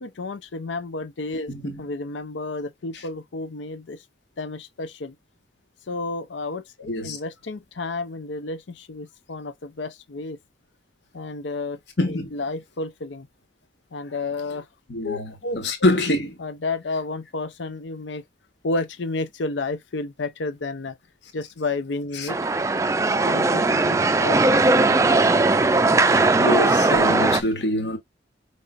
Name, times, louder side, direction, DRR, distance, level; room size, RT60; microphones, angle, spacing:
voice 1, 0.0-1.5 1.8-4.0 4.4-5.1 5.9-10.4 11.1-11.8 12.1-13.3 13.9-14.7 15.0-15.9 16.4-18.2 18.6-21.0 21.3-22.4 23.3-24.6, left 3 dB, 90° left, 0.6 m, -31 dB
voice 2, 1.5-1.8 6.9-7.2 12.0-12.4 14.9-16.3 22.1-22.3 24.7-24.9 25.6-25.7 26.0-28.0, left 1 dB, 70° left, 1.4 m, -25 dB
sound 1, 22.3-27.4, right 3 dB, 15° right, 0.3 m, -19 dB
5.4 x 3.3 x 2.4 m
head